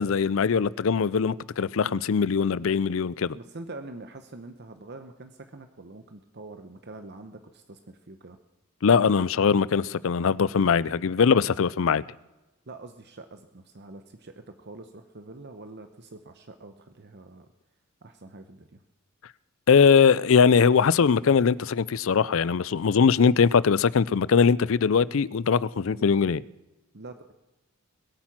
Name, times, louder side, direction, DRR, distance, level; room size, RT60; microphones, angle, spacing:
voice 1, 0.0-3.4 8.8-12.0 19.7-26.4, left 6 dB, 60° left, 0.4 m, -21 dB
voice 2, 3.3-8.4 12.7-17.5 18.0-18.8 25.8-26.1 26.9-27.3, right 2 dB, 50° right, 0.9 m, -45 dB
21.0 x 8.8 x 5.9 m
head